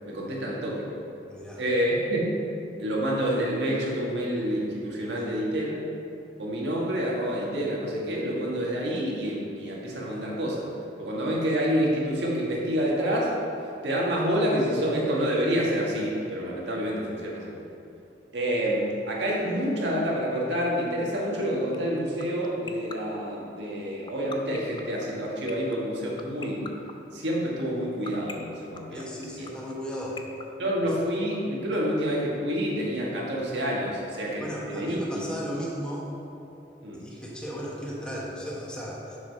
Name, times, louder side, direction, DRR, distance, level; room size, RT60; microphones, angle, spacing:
voice 1, 0.1-0.8 1.6-2.3 2.8-5.8 6.4-10.7 11.0-13.3 13.6-17.6 18.3-26.7 27.1-29.1 29.4-29.5 30.6-35.3 36.8-37.0, equal, 85° right, -4 dB, 1.6 m, -28 dB
voice 2, 1.3-1.6 28.9-30.2 34.4-36.1 37.0-39.2, equal, 5° left, -5 dB, 1.1 m, -35 dB
sound 1, 21.7-31.4, left 5 dB, 25° left, 0.4 m, -39 dB
7.0 x 5.0 x 5.4 m, 2.7 s
head